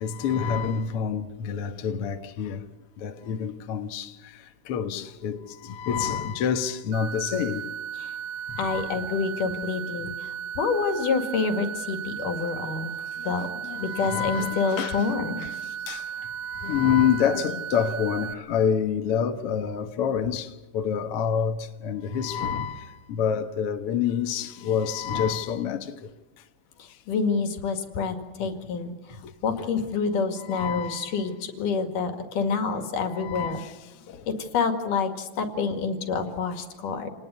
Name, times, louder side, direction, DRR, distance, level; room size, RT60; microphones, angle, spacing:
voice 1, 0.0-2.6 3.0-4.1 4.7-5.4 5.8-7.6 8.6-8.8 13.7-15.0 15.9-16.0 16.6-20.5 20.7-21.5 21.8-22.8 23.1-25.8 30.5-31.0 33.2-33.6, left 7 dB, 55° left, 1.8 m, -27 dB
sound 1, 6.9-18.3, right 8 dB, 55° right, 2.5 m, -35 dB
voice 2, 8.6-10.3 10.6-12.9 13.3-13.5 13.8-15.4 26.8-29.2 29.4-33.6 34.3-37.1, left 5 dB, 75° left, 3.7 m, -27 dB
28.5 x 19.5 x 8.2 m
omnidirectional pair, 3.8 m